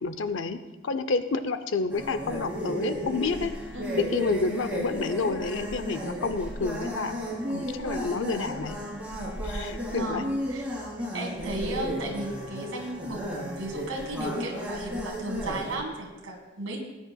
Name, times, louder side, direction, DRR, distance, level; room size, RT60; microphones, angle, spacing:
voice 1, 0.0-3.5 4.0-7.2 7.5-8.8 9.4-10.2, left 4 dB, 65° left, 10 dB, 0.6 m, -29 dB
sound 1, 1.9-15.7, equal, 5° right, 2.3 m, -34 dB
voice 2, 3.7-4.1 9.9-10.6 11.1-16.8, right 2 dB, 75° right, 0 dB, 1.9 m, -34 dB
18.0 x 9.3 x 2.3 m, 1.1 s
head